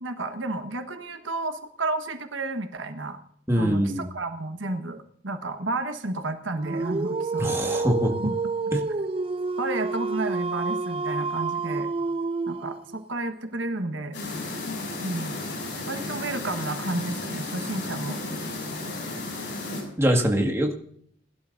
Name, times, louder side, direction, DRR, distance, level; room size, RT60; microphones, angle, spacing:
voice 1, 0.0-3.2 3.5-7.6 8.2-8.4 9.6-11.9 12.5-14.2 15.0-15.4 15.9-18.2, right 2 dB, 80° right, 7 dB, 1.4 m, -31 dB
voice 2, 3.5-4.1 7.4-8.1 8.7-8.8 20.0-20.7, equal, 15° right, 2 dB, 1.8 m, -23 dB
Dog, 6.6-13.0, right 3 dB, 30° right, 0.4 m, -29 dB
sound 1, 14.1-19.8, left 2 dB, 65° left, 6.1 m, -33 dB
21.5 x 12.0 x 2.6 m, 0.65 s
head